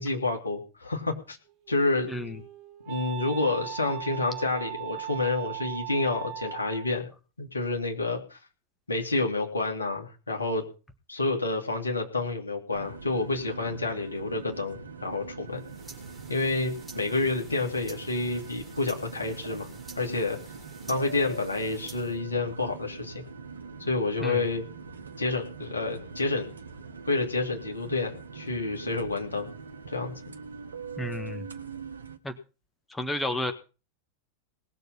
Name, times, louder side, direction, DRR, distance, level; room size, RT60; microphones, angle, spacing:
voice 1, 0.0-1.4 1.7-2.1 2.9-7.1 7.4-8.4 8.9-10.6 11.1-15.6 16.3-19.7 20.0-20.4 20.9-23.2 23.8-24.6 25.2-26.5 27.1-29.5 29.9-30.1, left 3 dB, 75° left, 3 dB, 2.7 m, -29 dB
Wind instrument woodwind instrument, 1.5-7.0, right 14 dB, 35° right, 2.3 m, -39 dB
sound 1, 12.7-32.2, right 5 dB, 75° right, 1.1 m, -43 dB
sound 2, 15.5-22.2, right 3 dB, 5° right, 3.9 m, -50 dB
voice 2, 31.0-31.5 32.2-32.3 32.9-33.5, left 1 dB, 10° left, 8 dB, 1.5 m, -31 dB
19.0 x 6.8 x 5.7 m, 0.33 s
figure-of-eight pair, 90°, 0 cm